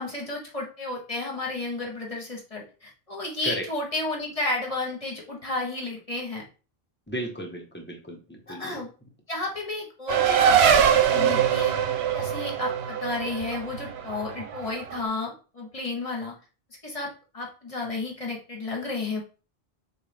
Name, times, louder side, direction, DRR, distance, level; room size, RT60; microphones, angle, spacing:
voice 1, 0.0-6.4 8.5-8.9 9.3-16.3 16.8-17.1 17.3-19.2, left 2 dB, 35° left, -1 dB, 1.3 m, -32 dB
voice 2, 7.1-8.8, equal, 10° left, 1 dB, 0.9 m, -34 dB
Race car auto racing, 10.1-15.0, right 8 dB, 85° right, 0.8 m, -22 dB
6.6 x 2.4 x 3.3 m, 0.35 s
omnidirectional pair, 1.0 m